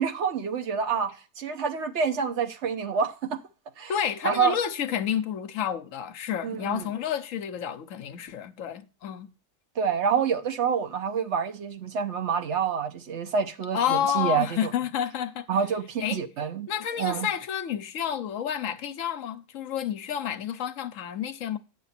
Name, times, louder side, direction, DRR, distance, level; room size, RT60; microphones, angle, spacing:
voice 1, 0.0-3.4 3.8-3.9 4.2-4.6 6.4-6.9 9.8-14.7 15.5-16.7 17.0-17.3, right 6 dB, 55° right, 1.1 m, -27 dB
voice 2, 3.9-9.3 13.7-15.5 16.0-16.2 16.7-21.6, left 9 dB, 65° left, 1.0 m, -30 dB
9.6 x 6.9 x 4.2 m
omnidirectional pair, 1.6 m